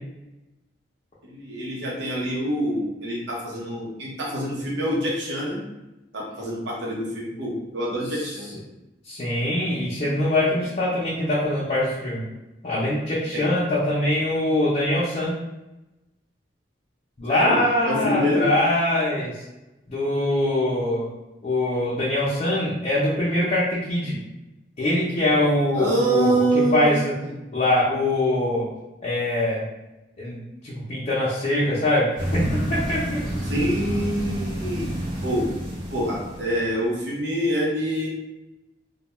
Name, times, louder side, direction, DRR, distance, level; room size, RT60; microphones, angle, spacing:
voice 1, 1.2-5.6 6.1-8.5 13.3-13.5 17.3-17.6 17.8-18.5 25.7-26.9 27.2-27.4 33.5-34.9 35.2-35.5 35.9-38.1, right 1 dB, 70° right, -3 dB, 0.7 m, -25 dB
voice 2, 9.1-12.2 12.6-15.3 17.2-19.4 19.9-21.1 21.4-24.2 24.8-26.4 26.7-27.1 27.5-28.7 29.0-29.6 30.2-33.2, left 1 dB, 40° left, -7 dB, 0.5 m, -23 dB
sound 1, 32.2-36.7, equal, 30° right, 0.9 m, -29 dB
2.2 x 2.2 x 2.9 m, 0.99 s
head